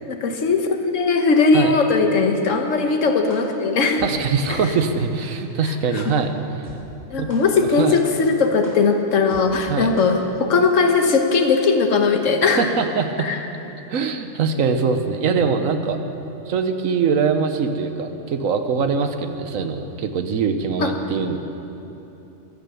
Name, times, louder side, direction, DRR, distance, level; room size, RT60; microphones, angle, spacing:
voice 1, 0.0-4.0 4.5-4.6 5.9-6.0 7.1-12.7 13.2-13.4 20.8-20.9, left 4 dB, 65° left, 5 dB, 1.4 m, -19 dB
sound 1, 3.3-3.4 4.0-4.1 4.6-4.7 5.3-5.4 6.0-6.1 6.6-6.7 7.3-7.4 8.0-8.1 8.6-8.7 9.3-9.4 10.0-10.1 10.6-10.7, equal, 15° right, 2.5 m, -42 dB
voice 2, 4.0-6.7 7.2-7.3 7.8-8.0 9.7-9.9 12.4-13.3 13.9-16.0 16.5-21.4, right 5 dB, 75° right, 7 dB, 1.3 m, -22 dB
14.5 x 10.5 x 7.0 m, 2.9 s
omnidirectional pair, 1.4 m